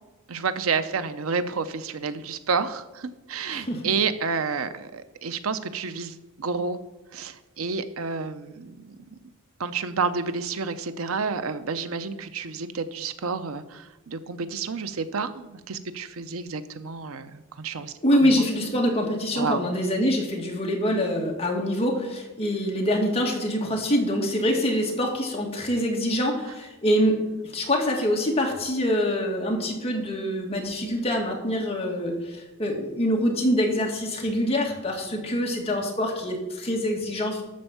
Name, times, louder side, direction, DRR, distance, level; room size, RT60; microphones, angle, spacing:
voice 1, 0.3-6.8 7.1-9.0 9.6-17.9 18.3-18.4 19.4-19.7, right 5 dB, 90° right, 12 dB, 0.7 m, -30 dB
voice 2, 3.5-3.9 18.0-27.2 27.4-37.4, equal, 30° left, 0 dB, 2.1 m, -25 dB
12.5 x 4.4 x 7.1 m, 1.1 s
head